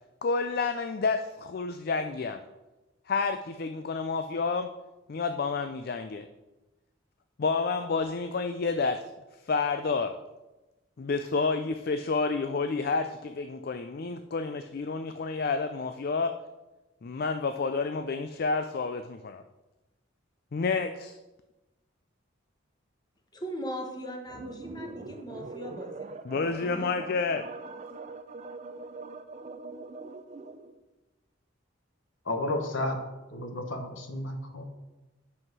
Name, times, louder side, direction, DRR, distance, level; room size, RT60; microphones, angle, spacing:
voice 1, 0.2-2.4 3.1-4.7 5.1-6.3 7.4-9.0 9.5-10.1 11.0-16.4 17.0-19.4 20.5-21.2 26.3-27.4, left 4 dB, 50° left, 9 dB, 0.4 m, -29 dB
voice 2, 23.3-26.9, equal, 20° left, 2 dB, 1.2 m, -40 dB
sound 1, 24.3-30.7, right 3 dB, 35° right, 0.5 m, -42 dB
voice 3, 32.2-33.0 33.3-34.6, left 1 dB, 70° left, 5 dB, 1.3 m, -32 dB
7.9 x 5.7 x 6.1 m, 1.1 s
head